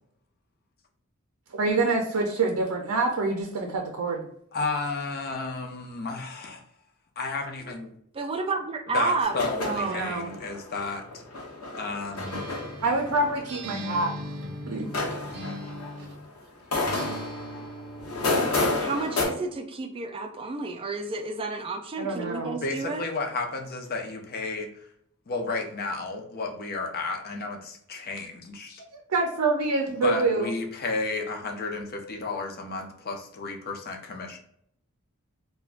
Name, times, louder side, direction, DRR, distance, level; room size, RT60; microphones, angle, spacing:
voice 1, 1.5-4.3 9.8-10.3 12.8-14.1 14.7-14.9 22.0-22.6 28.9-30.5, right 3 dB, 90° right, 1 dB, 0.5 m, -26 dB
voice 2, 4.5-6.6 7.2-7.9 8.9-11.2 11.8-12.4 22.5-24.7 25.3-28.8 30.0-34.4, left 3 dB, 45° left, 2 dB, 0.5 m, -32 dB
voice 3, 8.1-10.1 18.8-23.0, right 3 dB, 25° right, 5 dB, 0.3 m, -31 dB
sound 1, 9.2-14.2 14.7-16.4 16.7-19.3, left 2 dB, 80° left, 0.8 m, -31 dB
Acoustic guitar, 12.1-16.3 16.9-18.4, equal, 50° right, 0.7 m, -39 dB
3.4 x 2.2 x 2.4 m, 0.70 s
head